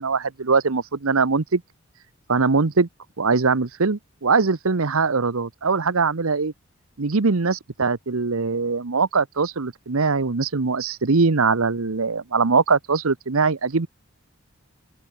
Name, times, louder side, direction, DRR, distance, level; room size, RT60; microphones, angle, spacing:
voice 1, 0.0-1.6 2.3-2.9 3.2-6.5 7.0-13.9, right 4 dB, 80° right, 0.9 m, -21 dB
open air
head